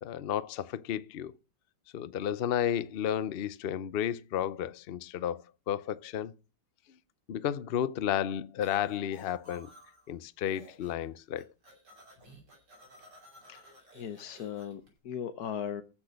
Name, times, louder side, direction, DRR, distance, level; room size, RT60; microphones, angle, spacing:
voice 1, 0.0-1.3 1.9-6.3 7.3-9.7 10.1-11.5, left 10 dB, 90° left, 0.5 m, -32 dB
sound 1, 8.6-10.1 10.4-11.1 11.3-14.9, right 1 dB, 70° right, 6.4 m, -55 dB
voice 2, 13.5-15.8, left 8 dB, 65° left, 1.3 m, -38 dB
14.5 x 6.2 x 6.4 m
omnidirectional pair, 1.9 m